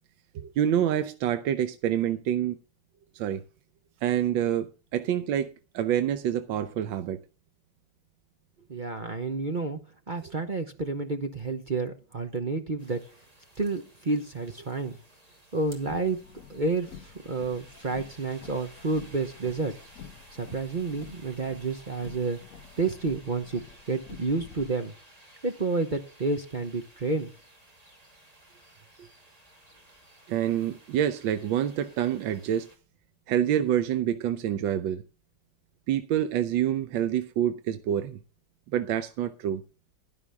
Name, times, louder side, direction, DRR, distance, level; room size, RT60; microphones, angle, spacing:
voice 1, 0.3-2.6 3.1-3.4 4.0-7.2 30.3-32.7 33.3-35.0 35.9-38.2 38.7-39.6, right 10 dB, 85° right, 1.5 m, -27 dB
voice 2, 8.7-13.0 13.6-15.0 15.5-16.2 16.5-19.8 20.3-22.4 22.8-24.9 25.4-27.3 29.0-29.1, right 3 dB, 35° right, 0.8 m, -30 dB
sound 1, 12.8-32.8, right 1 dB, 20° right, 2.5 m, -55 dB
Car, 15.6-24.7, left 7 dB, 50° left, 1.3 m, -49 dB
11.0 x 11.0 x 3.5 m
omnidirectional pair, 2.0 m